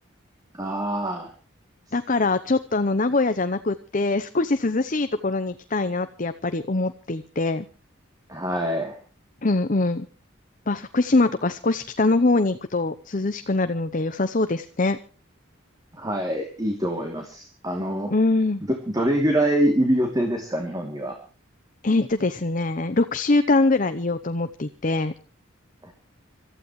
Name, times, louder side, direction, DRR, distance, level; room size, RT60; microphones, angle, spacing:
voice 1, 0.5-1.3 8.3-9.0 15.9-18.1 18.6-21.2 25.8-25.9, right 1 dB, 20° right, 2 dB, 2.8 m, -25 dB
voice 2, 1.9-7.7 9.4-10.1 10.7-15.0 18.1-18.6 21.8-25.1, left 2 dB, 40° left, 11 dB, 0.8 m, -23 dB
26.0 x 14.5 x 3.2 m, 0.37 s
head